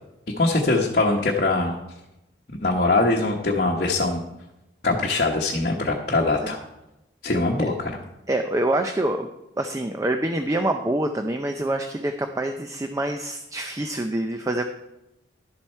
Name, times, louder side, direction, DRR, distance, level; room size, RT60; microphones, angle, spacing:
voice 1, 0.4-1.8 2.6-4.2 4.8-6.6 7.2-8.0, left 2 dB, 45° left, -2 dB, 1.0 m, -22 dB
voice 2, 8.3-9.3 9.6-14.6, right 1 dB, 15° right, 6 dB, 0.4 m, -26 dB
11.5 x 7.4 x 4.5 m, 0.92 s
head